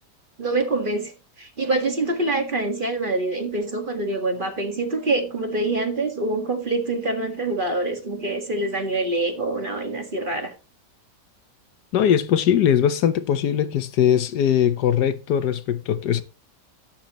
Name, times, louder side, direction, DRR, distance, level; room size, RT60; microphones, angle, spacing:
voice 1, 0.4-1.1 1.4-10.5, right 2 dB, 30° right, 1.8 m, -25 dB
voice 2, 11.9-16.2, left 9 dB, 70° left, 1.3 m, -20 dB
12.0 x 8.6 x 3.0 m
omnidirectional pair, 1.9 m